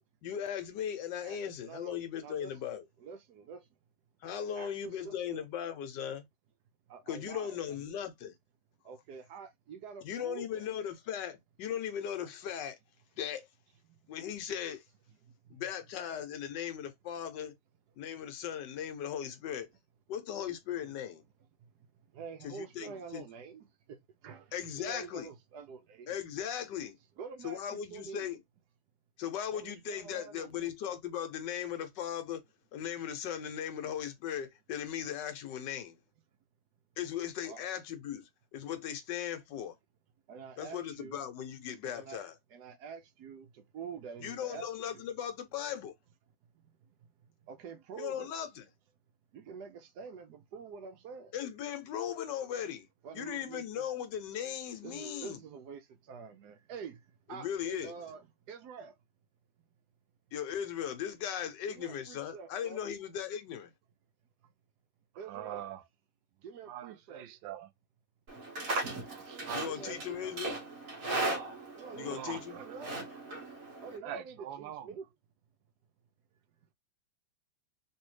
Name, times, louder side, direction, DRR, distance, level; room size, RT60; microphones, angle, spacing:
voice 1, 0.2-2.9 4.2-6.2 7.1-8.3 10.0-12.8 13.2-13.5 14.1-14.8 15.5-17.5 18.0-19.7 20.1-21.2 22.4-23.2 24.5-25.3 26.1-27.0 27.4-28.4 29.2-32.4 32.7-36.0 37.0-38.2 38.5-39.8 40.6-42.4 44.2-45.9 48.0-48.7 51.3-52.9 53.1-55.4 57.3-57.9 60.3-63.7 69.5-70.6 71.9-72.6, left 9 dB, 75° left, 1.3 m, -38 dB
voice 2, 1.2-2.5 3.0-3.7 4.6-5.5 6.9-7.8 8.8-10.7 13.9-14.0 15.2-15.6 21.6-21.9 22.1-26.2 27.2-28.3 29.5-30.7 37.4-37.6 40.3-41.2 41.8-42.2 42.5-45.0 46.5-46.7 47.0-47.1 47.4-48.3 49.3-51.3 53.0-53.9 54.8-59.0 61.7-62.9 65.2-65.6 66.4-67.2 69.6-70.2 71.8-72.9 73.8-75.1, right 6 dB, 70° right, 1.1 m, -47 dB
voice 3, 65.1-65.8 66.7-67.7 69.1-70.3 71.9-72.8 74.0-75.0, right 12 dB, 90° right, 1.3 m, -44 dB
Livestock farm animals working animals, 68.3-74.0, right 2 dB, 50° right, 1.4 m, -37 dB
3.3 x 2.7 x 3.1 m
omnidirectional pair, 2.0 m